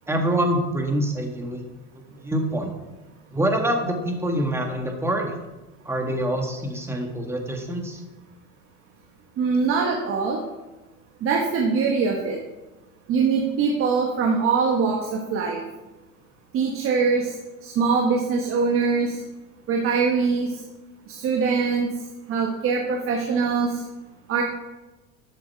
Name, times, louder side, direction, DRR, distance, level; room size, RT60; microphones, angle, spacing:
voice 1, 0.1-1.6 1.9-2.7 3.3-5.3 5.8-8.0, right 1 dB, 10° right, 3 dB, 1.7 m, -25 dB
voice 2, 9.4-10.4 11.2-12.4 13.1-15.6 16.5-17.4 17.6-19.2 19.7-20.6 21.1-21.9 22.3-23.8 24.3-24.4, right 5 dB, 45° right, 0 dB, 1.6 m, -23 dB
12.5 x 7.8 x 4.7 m, 1.1 s
cardioid pair, 135°, 30 cm